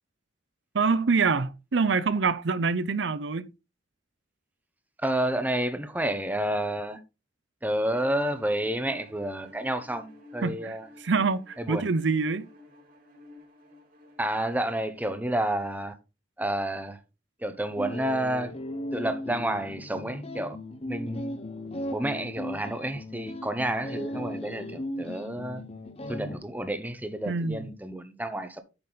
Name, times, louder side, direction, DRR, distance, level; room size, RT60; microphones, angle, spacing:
voice 1, 0.7-3.5 10.4-12.5 27.3-27.7, right 4 dB, 70° right, 0.6 m, -26 dB
voice 2, 5.0-7.0 7.6-10.9 11.6-11.9 14.2-15.9 16.4-17.0 17.4-18.5 18.9-20.6 20.9-21.5 21.9-25.6 26.1-28.6, right 1 dB, 10° right, 1.0 m, -30 dB
Bowed string instrument, 7.9-14.4, left 2 dB, 50° right, 2.9 m, -52 dB
sound 1, 17.8-26.4, left 1 dB, 35° left, 1.1 m, -37 dB
8.8 x 6.6 x 4.1 m
head